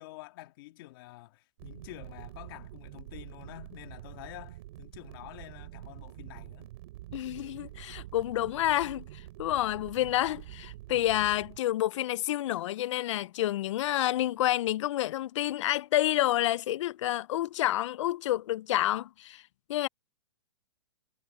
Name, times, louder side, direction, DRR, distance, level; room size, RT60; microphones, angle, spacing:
voice 1, 0.0-6.7, left 17 dB, 45° left, 2.1 m, -48 dB
sound 1, 1.6-11.6, right 16 dB, 55° right, 5.0 m, -46 dB
voice 2, 7.1-9.0 9.4-19.4 19.7-19.9, left 14 dB, 65° left, 0.4 m, -29 dB
hypercardioid pair, 155°, 16 cm